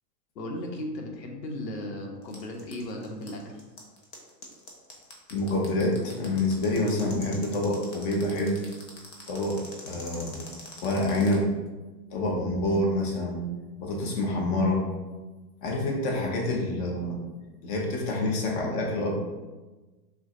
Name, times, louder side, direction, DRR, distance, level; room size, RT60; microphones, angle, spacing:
voice 1, 0.3-3.6, left 1 dB, 80° left, 1 dB, 1.3 m, -36 dB
sound 1, 2.2-11.3, left 3 dB, 20° left, 0.3 m, -44 dB
voice 2, 5.3-8.6 9.3-10.5 10.8-11.5 12.1-13.4 13.8-14.9 15.6-17.2 17.6-19.2, left 1 dB, 40° left, 0 dB, 1.1 m, -27 dB
6.0 x 2.3 x 3.9 m, 1.2 s
hypercardioid pair, 125°, 50 cm